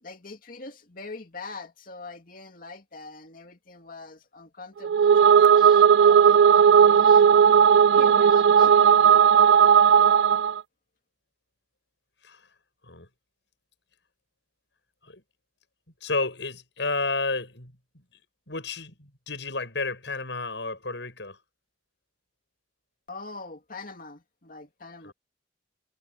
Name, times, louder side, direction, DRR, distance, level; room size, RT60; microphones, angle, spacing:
voice 1, 0.0-7.3 7.8-9.3 23.1-25.1, left 3 dB, 50° left, 2.4 m, -43 dB
sound 1, 4.8-10.6, right 7 dB, 65° right, 0.3 m, -16 dB
voice 2, 16.0-18.0 18.5-21.4 25.0-25.1, left 3 dB, 75° left, 7.9 m, -31 dB
head